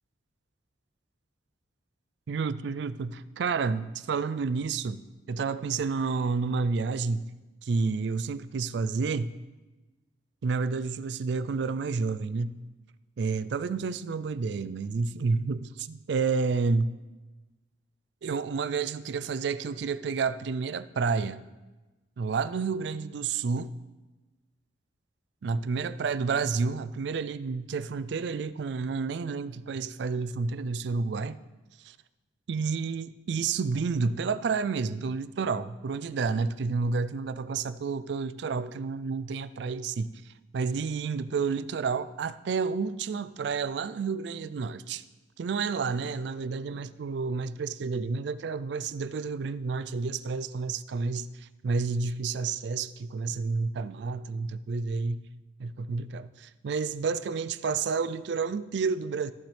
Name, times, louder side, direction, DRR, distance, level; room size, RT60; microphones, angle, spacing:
voice 1, 2.3-7.3 7.6-9.4 10.4-12.6 13.2-16.9 18.2-21.5 22.2-23.8 25.4-31.4 31.8-32.0 32.5-40.1 40.5-45.0 45.4-55.3 55.6-59.3, right 4 dB, 60° right, 0.3 m, -30 dB
14.0 x 6.1 x 3.3 m
head